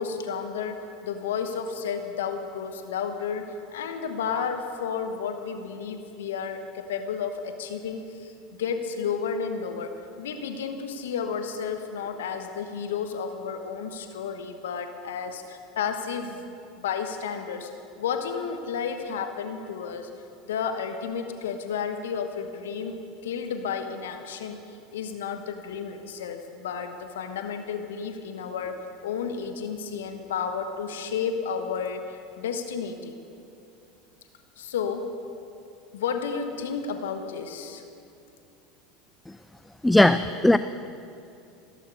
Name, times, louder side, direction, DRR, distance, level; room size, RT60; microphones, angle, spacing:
voice 1, 0.0-3.4 3.7-8.3 8.6-16.4 16.8-17.7 18.0-20.1 20.5-33.1 34.6-35.1 35.9-37.8, left 6 dB, 75° left, 7 dB, 1.0 m, -32 dB
voice 2, 39.8-40.6, left 1 dB, 5° left, 12 dB, 0.4 m, -18 dB
15.5 x 14.0 x 5.3 m, 2.6 s
hypercardioid pair, 75°, 0 cm